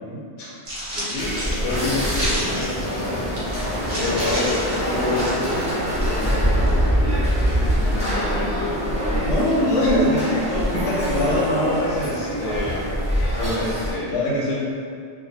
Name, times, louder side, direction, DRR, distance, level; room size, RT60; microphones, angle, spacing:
voice 1, 0.0-0.6 4.0-4.1 9.2-12.8 13.4-14.6, left 1 dB, 85° left, -5 dB, 1.0 m, -24 dB
sound 1, 0.7-5.7, equal, 50° right, 0.6 m, -31 dB
voice 2, 0.9-3.3 3.9-4.6 4.8-8.7, left 2 dB, 65° left, -7 dB, 0.8 m, -28 dB
sound 2, 1.2-13.9, equal, 10° right, 0.4 m, -24 dB
2.4 x 2.2 x 2.6 m, 2.3 s
omnidirectional pair, 1.2 m